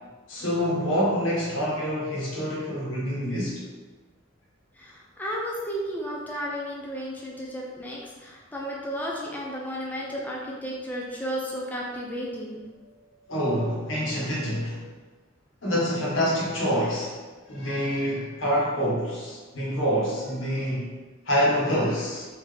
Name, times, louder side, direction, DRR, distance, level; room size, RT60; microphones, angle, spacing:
voice 1, 0.3-3.6 13.3-14.9 15.6-17.1 17.5-20.9 21.3-22.3, equal, 75° left, -5 dB, 1.1 m, -26 dB
voice 2, 4.8-12.6, equal, 10° left, -4 dB, 0.5 m, -33 dB
3.8 x 2.7 x 3.3 m, 1.3 s
head